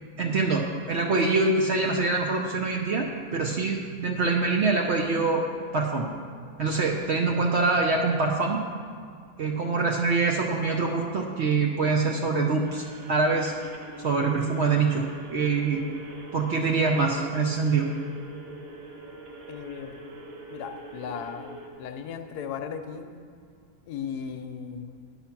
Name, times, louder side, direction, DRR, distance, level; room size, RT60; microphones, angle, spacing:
voice 1, 0.2-5.4 5.7-6.1 6.6-8.6 9.4-13.5 14.0-15.8 16.3-17.9, right 4 dB, 60° right, 1 dB, 0.7 m, -25 dB
sound 1, 12.6-21.7, right 2 dB, 45° right, 1.1 m, -44 dB
voice 2, 19.5-20.2 20.5-23.1 23.9-25.0, left 7 dB, 75° left, 7 dB, 1.1 m, -37 dB
10.0 x 5.7 x 5.9 m, 2.2 s
omnidirectional pair, 1.7 m